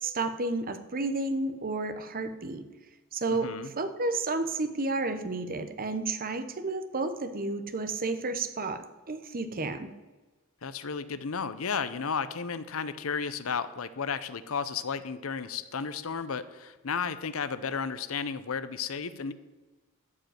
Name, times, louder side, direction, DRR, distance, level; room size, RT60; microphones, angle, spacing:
voice 1, 0.0-2.6 3.1-3.5 3.8-9.9, right 3 dB, 45° right, 9 dB, 0.9 m, -31 dB
voice 2, 3.3-3.7 10.6-19.3, left 6 dB, 70° left, 14 dB, 0.7 m, -33 dB
12.0 x 5.3 x 8.9 m, 1.2 s
head